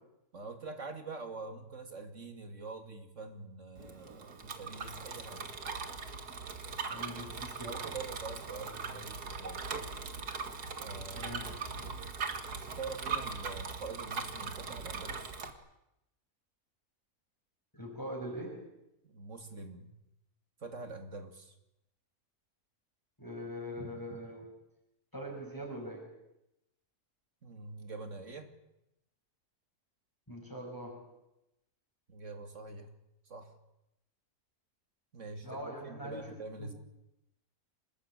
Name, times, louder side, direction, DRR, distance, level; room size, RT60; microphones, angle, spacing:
voice 1, 0.3-5.5 7.6-9.6 10.8-11.4 11.7-12.0 12.8-15.4 19.0-19.9 20.6-21.5 27.4-28.5 32.1-32.9 33.3-33.5 35.1-36.7, right 3 dB, 50° right, 7 dB, 3.1 m, -45 dB
Bicycle, 3.8-15.5, right 5 dB, 85° right, 2.6 m, -40 dB
voice 2, 6.9-7.8 11.1-11.9 17.7-18.7 23.2-24.5 25.1-26.1 30.3-31.1 35.4-36.3 36.6-36.7, equal, 10° left, 0 dB, 6.1 m, -42 dB
26.5 x 20.0 x 9.2 m, 0.87 s
omnidirectional pair, 1.6 m